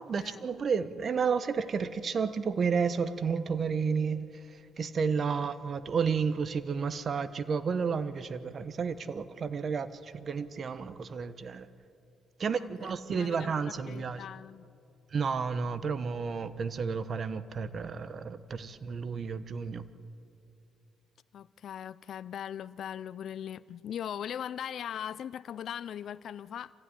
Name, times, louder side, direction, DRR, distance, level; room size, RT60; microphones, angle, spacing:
voice 1, 0.0-11.7 12.4-14.2 15.1-19.8, right 5 dB, 50° right, 13 dB, 1.1 m, -31 dB
voice 2, 12.5-14.7 21.3-26.7, left 9 dB, 65° left, 16 dB, 0.5 m, -40 dB
26.0 x 15.5 x 10.0 m, 2.6 s
cardioid pair, 90°, 0 cm